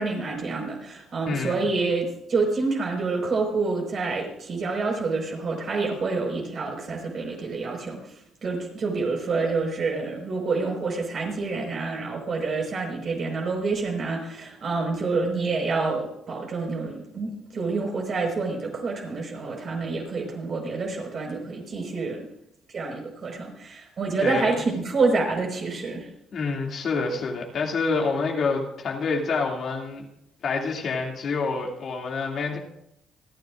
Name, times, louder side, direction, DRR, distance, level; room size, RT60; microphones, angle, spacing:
voice 1, 0.0-8.0 8.4-22.3 22.7-26.1, right 3 dB, 50° right, 1 dB, 5.0 m, -27 dB
voice 2, 1.2-1.7 24.2-24.6 26.3-30.1 30.4-32.6, left 4 dB, 60° left, 0 dB, 2.6 m, -27 dB
27.0 x 9.8 x 2.6 m, 0.78 s
supercardioid pair, 70°, 0 cm